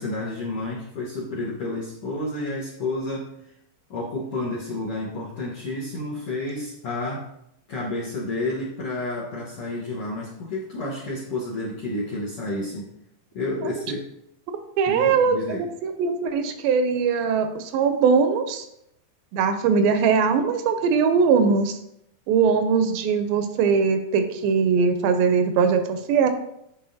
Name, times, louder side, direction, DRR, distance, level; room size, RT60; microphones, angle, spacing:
voice 1, 0.0-3.3 3.9-7.2 7.7-12.9 13.3-14.1 14.9-15.7, left 2 dB, 75° left, -6 dB, 1.3 m, -30 dB
voice 2, 14.8-18.6 19.3-21.8 22.3-26.3, right 5 dB, 85° right, 8 dB, 2.3 m, -21 dB
10.5 x 3.6 x 2.7 m, 0.78 s
omnidirectional pair, 4.2 m